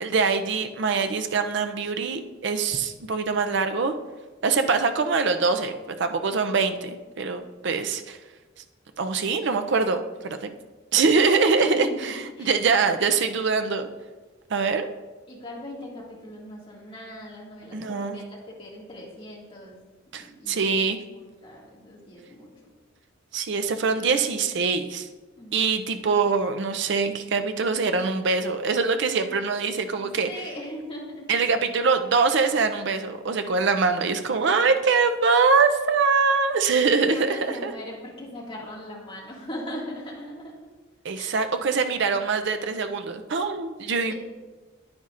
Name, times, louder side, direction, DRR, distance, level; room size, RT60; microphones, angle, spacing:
voice 1, 0.0-3.9 4.4-8.2 9.0-10.5 10.9-12.1 12.4-13.9 14.5-14.9 17.7-18.2 20.1-21.0 23.3-25.1 25.5-30.3 31.3-37.7 41.0-44.1, right 4 dB, 60° right, 7 dB, 0.6 m, -23 dB
voice 2, 11.6-12.5 15.3-19.8 20.2-20.6 21.1-22.5 25.4-25.7 30.0-31.3 34.7-34.8 37.0-40.7 41.1-41.3, equal, 25° left, -4 dB, 2.0 m, -39 dB
9.6 x 9.5 x 2.5 m, 1.3 s
head